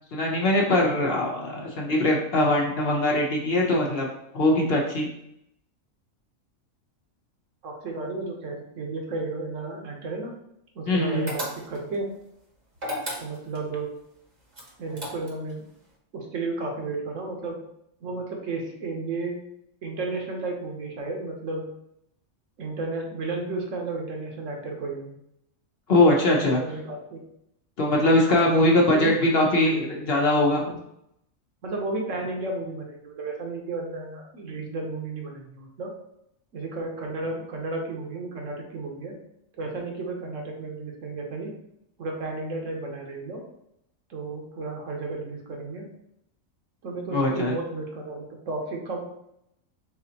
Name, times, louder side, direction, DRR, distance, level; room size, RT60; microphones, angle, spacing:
voice 1, 0.0-4.1 4.3-5.1 10.9-11.3 25.9-26.6 27.8-30.6 47.1-47.5, left 1 dB, 55° left, -1 dB, 0.9 m, -21 dB
voice 2, 7.6-10.3 10.7-12.1 13.2-13.9 14.8-15.6 16.1-17.6 18.0-19.4 19.8-21.6 22.6-25.1 26.3-27.2 28.3-29.1 31.6-35.9 36.5-39.2 39.5-41.5 42.0-43.4 44.1-45.9 46.8-49.0, right 3 dB, 70° right, 1 dB, 1.2 m, -33 dB
sound 1, 11.3-12.0 12.8-13.7 14.5-15.5, equal, 35° right, 0.9 m, -34 dB
4.2 x 3.9 x 2.8 m, 0.78 s
omnidirectional pair, 1.4 m